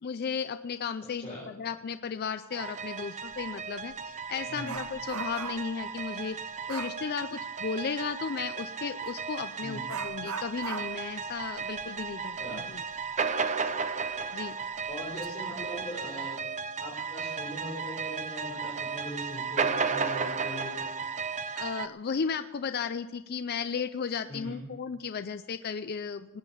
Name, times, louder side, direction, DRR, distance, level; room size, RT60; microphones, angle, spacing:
voice 1, 0.0-6.4 6.7-12.8 14.3-14.6 21.6-26.4, left 6 dB, 45° left, 11 dB, 0.4 m, -35 dB
sound 1, 2.5-21.9, right 5 dB, 35° right, 0.7 m, -34 dB
Dog, 3.3-3.5 3.9-5.8 6.7-7.0 9.0-9.2 9.9-13.2 13.5-13.6 14.1-14.2 14.9-15.3 15.6-15.9, right 6 dB, 90° right, 1.0 m, -40 dB
voice 2, 14.9-16.4 16.8-20.7 24.3-24.6, equal, 25° left, -6 dB, 4.0 m, -40 dB
19.0 x 8.9 x 7.0 m, 1.0 s
head